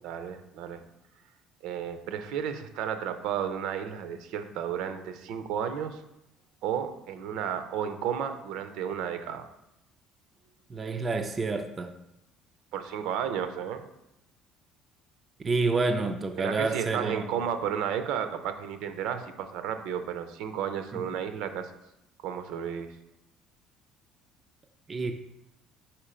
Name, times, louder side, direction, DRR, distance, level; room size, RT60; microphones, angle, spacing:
voice 1, 0.0-0.8 1.6-6.0 6.6-9.4 12.7-13.8 16.4-21.7 22.2-22.9, right 8 dB, 70° right, 0.6 m, -33 dB
voice 2, 10.7-11.9 15.4-17.3 20.9-21.1 24.9-25.1, right 3 dB, 20° right, 0.3 m, -28 dB
4.7 x 4.4 x 5.0 m
cardioid pair, 160°, 0 cm